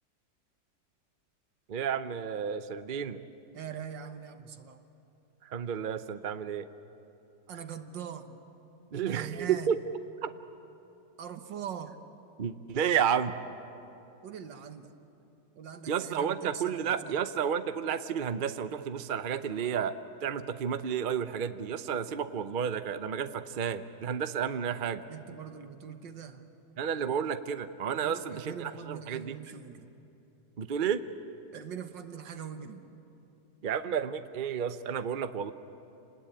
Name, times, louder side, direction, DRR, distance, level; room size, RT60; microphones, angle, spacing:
voice 1, 1.7-3.2 5.4-6.7 8.9-9.8 10.2-10.3 12.4-13.4 15.9-20.0 20.2-25.0 26.8-29.4 30.6-31.0 33.6-35.5, right 8 dB, 50° right, 10 dB, 0.6 m, -31 dB
voice 2, 3.5-4.8 7.5-8.4 9.1-9.8 11.2-12.0 14.2-14.9 15.6-17.2 25.1-26.5 27.9-29.9 31.5-32.9, right 8 dB, 85° right, 8 dB, 1.9 m, -42 dB
29.0 x 20.0 x 8.7 m, 2.8 s
omnidirectional pair, 1.9 m